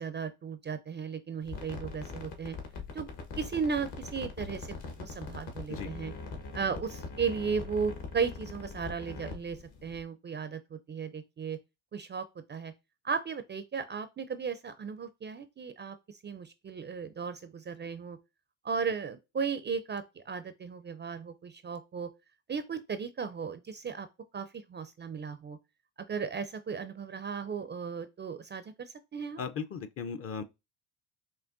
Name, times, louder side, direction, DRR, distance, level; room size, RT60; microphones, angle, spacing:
voice 1, 0.0-2.6 2.9-3.1 3.4-6.1 6.5-11.6 11.9-12.7 13.0-18.2 18.6-22.1 22.5-24.1 24.3-25.6 26.0-29.4, right 6 dB, 25° right, 0.4 m, -36 dB
sound 1, 1.4-10.0, left 4 dB, 60° left, 1.4 m, -42 dB
voice 2, 29.4-30.4, left 6 dB, 30° left, 0.5 m, -37 dB
5.9 x 2.3 x 2.5 m
hypercardioid pair, 70°, 45 cm